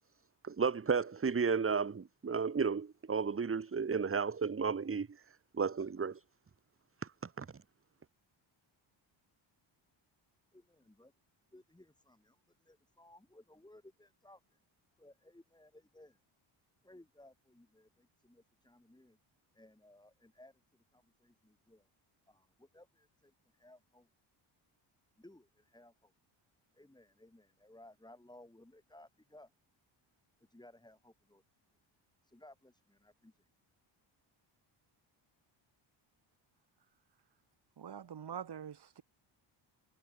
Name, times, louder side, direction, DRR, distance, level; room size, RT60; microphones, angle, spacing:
voice 1, 0.4-5.2 5.6-6.2 7.2-7.5, right 5 dB, 25° right, 1.5 m, -33 dB
voice 2, 10.5-11.1 11.5-12.4 12.7-14.4 15.0-16.2 16.8-19.2 19.6-20.5 20.9-21.8 22.3-23.3 23.6-24.1 25.2-25.9 26.8-29.5 30.5-31.4 32.3-33.3, left 1 dB, 10° left, 4.5 m, -60 dB
voice 3, 37.8-39.0, right 8 dB, 50° right, 3.2 m, -44 dB
cardioid pair, 85°, 49 cm